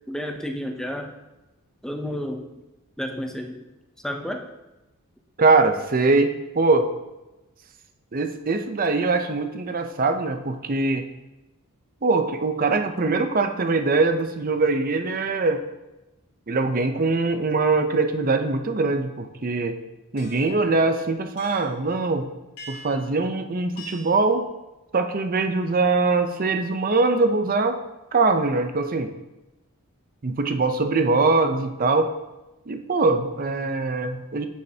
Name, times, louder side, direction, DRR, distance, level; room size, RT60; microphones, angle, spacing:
voice 1, 0.1-1.1 1.8-2.5 3.0-3.6 4.0-4.5, equal, 5° left, 4 dB, 0.6 m, -31 dB
voice 2, 5.4-6.9 8.1-11.1 12.0-15.6 16.5-19.8 20.1-22.3 22.7-24.4 24.9-27.8 28.1-29.1 30.2-32.1 32.7-34.5, right 3 dB, 40° right, 7 dB, 0.6 m, -22 dB
sound 1, 20.2-20.6 21.4-21.8 22.6-23.1 23.8-24.2, equal, 85° left, 2.0 m, -42 dB
9.6 x 6.4 x 2.8 m, 1.0 s
head